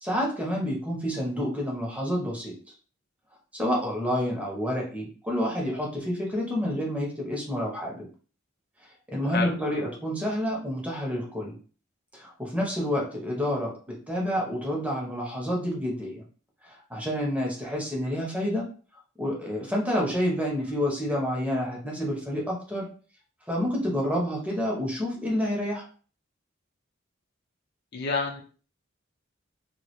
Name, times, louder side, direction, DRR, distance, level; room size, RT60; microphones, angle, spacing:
voice 1, 0.0-2.5 3.5-8.0 9.1-11.6 12.1-16.2 16.6-18.7 19.2-22.9 23.5-25.9, equal, 5° right, -2 dB, 0.6 m, -29 dB
voice 2, 27.9-28.4, left 3 dB, 50° left, 2 dB, 0.4 m, -28 dB
2.2 x 2.1 x 2.8 m, 0.39 s
head